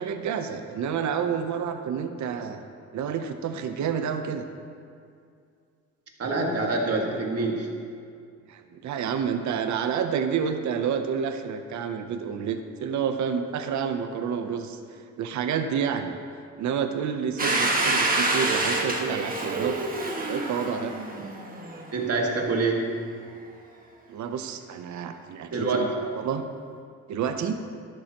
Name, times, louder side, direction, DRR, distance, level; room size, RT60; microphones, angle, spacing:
voice 1, 0.0-2.6 2.9-4.4 8.5-14.8 15.2-16.1 16.6-19.9 20.3-21.0 24.1-25.9 26.2-26.4 27.1-27.6, right 7 dB, 70° right, 7 dB, 0.8 m, -29 dB
voice 2, 6.2-7.7 21.9-22.9 25.5-25.9, right 3 dB, 55° right, 0 dB, 1.9 m, -26 dB
Domestic sounds home sounds, 17.4-22.0, right 2 dB, 30° right, 1.6 m, -27 dB
12.5 x 10.5 x 3.0 m, 2.3 s
cardioid pair, 90°, 30 cm